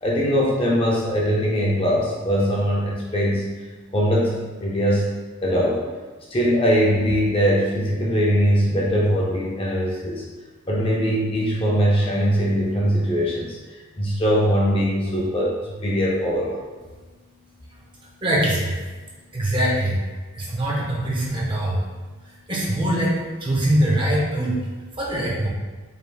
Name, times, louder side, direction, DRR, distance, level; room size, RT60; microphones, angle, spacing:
voice 1, 0.0-3.5 3.9-5.0 5.4-5.8 6.3-10.2 10.7-13.6 14.0-16.6, equal, 25° left, -3 dB, 0.5 m, -21 dB
voice 2, 18.2-18.8 19.3-20.0 20.3-21.8 22.2-24.6 24.9-25.5, right 1 dB, 25° right, -4 dB, 0.7 m, -23 dB
4.8 x 3.4 x 2.3 m, 1.3 s
head